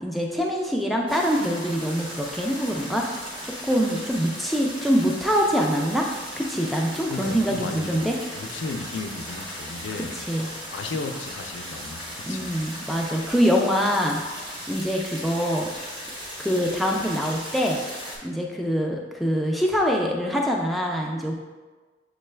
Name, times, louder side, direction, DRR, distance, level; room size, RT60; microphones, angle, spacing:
voice 1, 0.0-3.1 3.4-6.1 6.4-8.2 10.3-10.5 12.3-15.7 16.4-17.8 18.2-21.4, equal, ahead, -1 dB, 0.3 m, -24 dB
sound 1, 1.1-18.2, equal, 25° right, 0.9 m, -37 dB
voice 2, 7.1-10.4 10.7-12.5, left 3 dB, 70° left, 5 dB, 0.4 m, -35 dB
6.6 x 2.2 x 3.2 m, 1.3 s
head